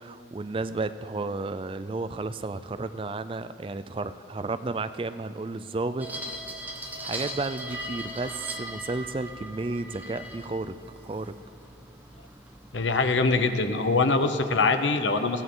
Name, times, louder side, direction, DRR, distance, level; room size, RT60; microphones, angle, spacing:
voice 1, 0.0-6.1 7.0-10.7 11.0-11.3, right 3 dB, 30° right, 12 dB, 0.4 m, -32 dB
sound 1, 6.0-13.4, right 1 dB, 10° right, 1.0 m, -39 dB
voice 2, 12.7-15.4, left 3 dB, 85° left, 8 dB, 0.9 m, -23 dB
20.5 x 15.5 x 3.9 m, 2.9 s
head